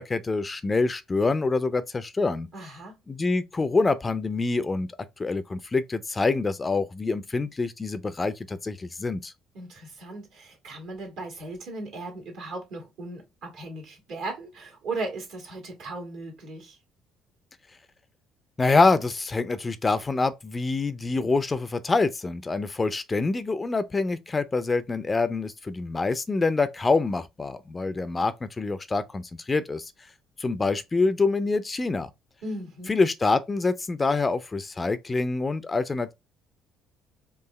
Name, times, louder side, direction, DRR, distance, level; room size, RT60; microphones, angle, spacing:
voice 1, 0.0-2.5 3.1-4.9 5.2-9.3 18.6-29.9 30.4-32.1 32.9-36.1, left 3 dB, 25° left, 0.4 m, -26 dB
voice 2, 2.5-3.0 9.5-16.8 32.4-33.0, right 2 dB, 65° right, 1.7 m, -37 dB
4.6 x 2.5 x 3.1 m
figure-of-eight pair, 50°, 0 cm